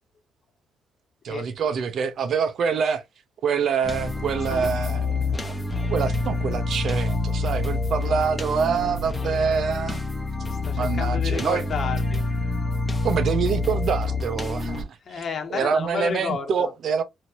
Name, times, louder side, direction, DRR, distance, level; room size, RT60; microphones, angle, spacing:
voice 1, 1.2-3.0 3.4-5.6 5.9-10.0 10.7-11.7 13.0-15.0 15.5-17.0, right 6 dB, 60° right, 0.7 m, -26 dB
sound 1, 3.8-14.8, left 3 dB, 10° left, 1.0 m, -27 dB
voice 2, 10.5-12.2 15.0-16.7, left 6 dB, 50° left, 1.1 m, -31 dB
2.8 x 2.8 x 2.9 m
cardioid pair, 90°, 0 cm